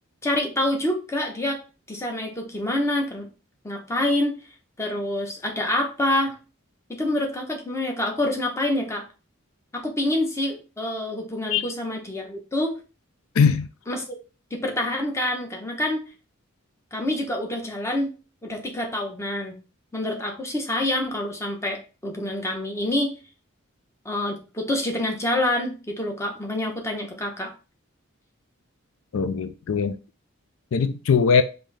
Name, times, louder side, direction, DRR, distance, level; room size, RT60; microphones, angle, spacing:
voice 1, 0.2-1.6 1.9-3.3 3.6-4.4 4.8-6.4 6.9-9.0 9.7-12.8 13.9-14.0 14.5-16.0 16.9-18.1 18.4-19.5 19.9-23.1 24.0-27.5, left 1 dB, 15° left, 0.9 m, -27 dB
voice 2, 13.4-13.7 29.1-30.0 30.7-31.4, left 6 dB, 80° left, 0.4 m, -20 dB
5.4 x 2.7 x 3.3 m
head